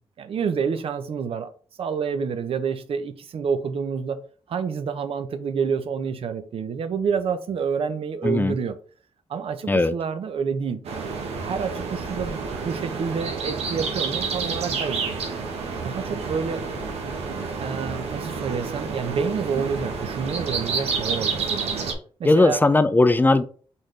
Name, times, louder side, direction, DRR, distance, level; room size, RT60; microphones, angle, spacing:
voice 1, 0.2-1.5 1.8-4.2 4.5-8.8 9.3-11.0 11.4-15.0 15.8-16.7 17.6-21.8 22.2-22.6, right 6 dB, 65° right, 0.6 m, -28 dB
voice 2, 8.2-8.6 9.7-9.9 22.2-23.4, left 2 dB, 20° left, 0.4 m, -18 dB
sound 1, 10.8-21.9, right 4 dB, 85° right, 1.0 m, -29 dB
4.0 x 3.9 x 3.2 m
cardioid pair, 85°, 10 cm